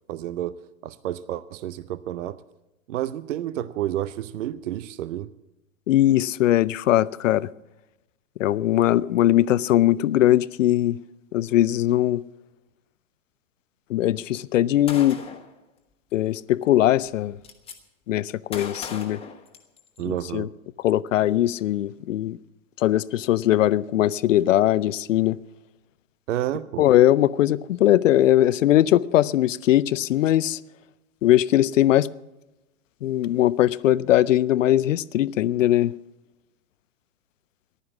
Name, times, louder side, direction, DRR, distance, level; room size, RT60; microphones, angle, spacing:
voice 1, 0.1-2.4 2.9-5.3 20.0-20.5 26.3-26.8, right 12 dB, 60° right, 0.6 m, -30 dB
voice 2, 5.9-7.5 8.4-11.0 11.3-12.2 13.9-15.2 16.1-17.4 18.1-19.2 20.0-20.5 20.8-22.4 22.8-25.4 26.8-30.6 31.2-32.1 33.0-35.9, left 13 dB, 65° left, 0.5 m, -20 dB
Gunshot gunfire, 14.9-15.5 16.7-16.8 17.0-17.8 18.5-20.0, left 6 dB, 15° left, 1.6 m, -38 dB
14.5 x 11.5 x 7.3 m
hypercardioid pair, 110°, 42 cm